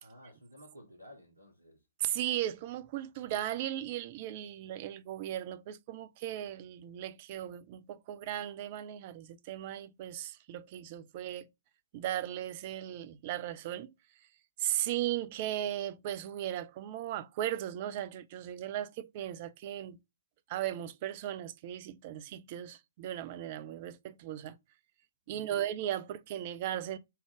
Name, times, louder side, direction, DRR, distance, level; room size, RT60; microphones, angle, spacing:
voice 1, 0.0-1.8 25.3-25.6, equal, 80° right, 1.2 m, -54 dB
voice 2, 2.0-11.5 11.9-13.9 14.6-20.0 20.5-24.6 25.3-27.0, right 12 dB, 40° right, 0.4 m, -37 dB
3.7 x 3.4 x 3.3 m
figure-of-eight pair, 115°, 0 cm